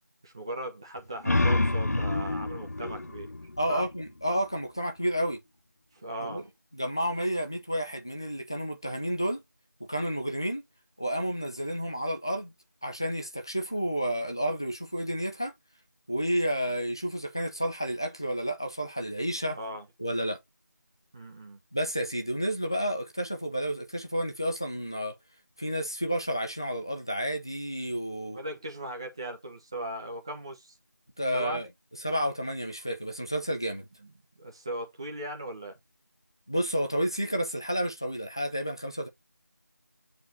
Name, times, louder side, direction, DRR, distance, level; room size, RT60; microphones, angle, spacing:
voice 1, 0.2-3.3 3.7-3.9 5.9-6.5 19.5-19.8 21.1-21.6 28.3-30.7 31.3-31.6 34.0-34.1 34.4-35.8, right 1 dB, 15° right, 1.4 m, -38 dB
sound 1, 1.0-4.4, left 2 dB, 55° left, 1.0 m, -28 dB
voice 2, 3.6-5.4 6.2-6.4 6.7-9.4 9.9-10.7 11.0-12.5 12.8-15.5 16.1-19.6 20.0-20.4 21.7-25.2 25.6-28.4 31.2-31.7 32.0-33.9 36.5-39.1, equal, 15° left, 0.6 m, -30 dB
9.0 x 4.7 x 2.9 m
figure-of-eight pair, 175°, 10 cm